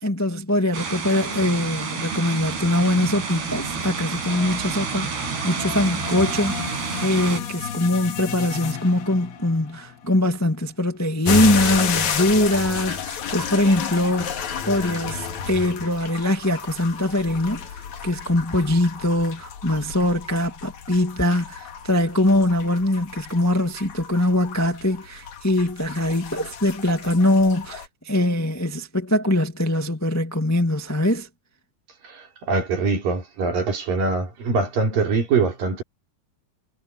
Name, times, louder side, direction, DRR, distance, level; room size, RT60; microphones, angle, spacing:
voice 1, 0.0-17.6 18.0-31.3, left 1 dB, 10° left, 0.8 m, -22 dB
sound 1, 0.7-7.4, right 5 dB, 85° right, 7.5 m, -29 dB
sound 2, 2.4-10.8, left 8 dB, 80° left, 4.1 m, -36 dB
Saw for stones cooled with water, 11.2-27.9, left 7 dB, 55° left, 2.9 m, -31 dB
voice 2, 32.0-35.8, right 4 dB, 60° right, 5.9 m, -23 dB
omnidirectional pair, 4.5 m